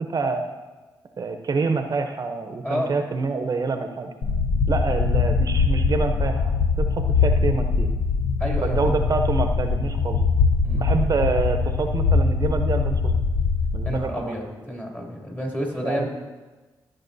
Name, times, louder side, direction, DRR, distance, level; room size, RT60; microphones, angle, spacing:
voice 1, 0.1-0.4 1.2-4.1 4.7-6.5 6.8-7.9 8.6-10.2 10.7-13.0 13.7-14.3 15.8-16.1, right 4 dB, 45° right, 6 dB, 0.7 m, -26 dB
sound 1, 4.2-14.0, left 4 dB, 70° left, 0.8 m, -22 dB
voice 2, 8.4-8.9 10.6-10.8 13.8-16.1, equal, 20° left, -1 dB, 2.6 m, -30 dB
15.0 x 7.8 x 2.7 m, 1.2 s
cardioid pair, 75°, 9 cm